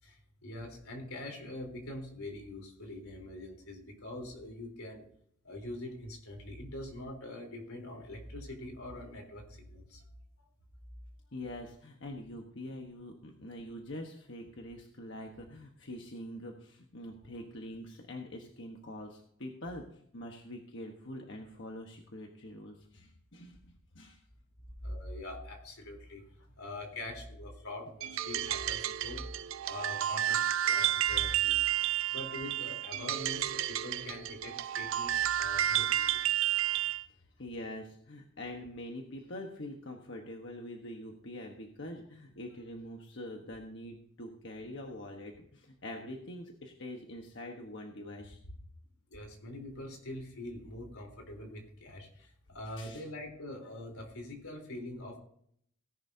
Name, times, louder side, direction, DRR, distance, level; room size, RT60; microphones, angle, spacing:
voice 1, 0.0-5.0 5.4-10.0 24.8-26.3 26.5-29.3 29.7-30.4 30.7-31.6 32.1-36.2 49.1-55.2, left 1 dB, 85° left, 2 dB, 3.7 m, -44 dB
voice 2, 11.3-19.8 20.1-24.2 37.1-48.4 52.8-53.0, left 1 dB, 55° left, 2 dB, 1.3 m, -44 dB
sound 1, 28.0-37.0, right 11 dB, 65° right, 0.5 m, -31 dB
17.5 x 11.0 x 2.8 m, 0.66 s
head